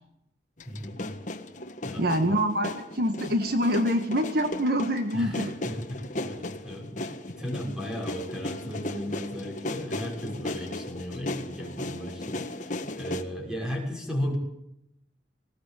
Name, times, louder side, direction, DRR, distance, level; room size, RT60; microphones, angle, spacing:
sound 1, 0.6-13.2, left 1 dB, 40° left, 1.6 m, -36 dB
voice 1, 0.6-1.0 1.8-2.3 5.1-14.4, equal, 5° right, 0 dB, 6.3 m, -35 dB
voice 2, 2.0-2.7 2.9-5.5, equal, 55° right, 7 dB, 1.6 m, -25 dB
20.0 x 18.5 x 8.7 m, 0.82 s
head